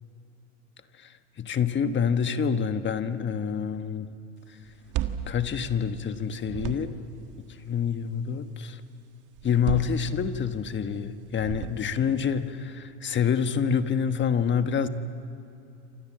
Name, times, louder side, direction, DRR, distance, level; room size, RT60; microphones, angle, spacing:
voice 1, 1.4-4.1 5.3-7.0 7.4-8.8 9.4-14.9, left 7 dB, 30° left, 9 dB, 1.3 m, -27 dB
sound 1, 4.7-6.1 6.4-7.2 9.4-10.6 11.3-12.1, right 10 dB, 55° right, 1.7 m, -34 dB
28.5 x 26.0 x 7.6 m, 2.7 s
supercardioid pair, 110°, 36 cm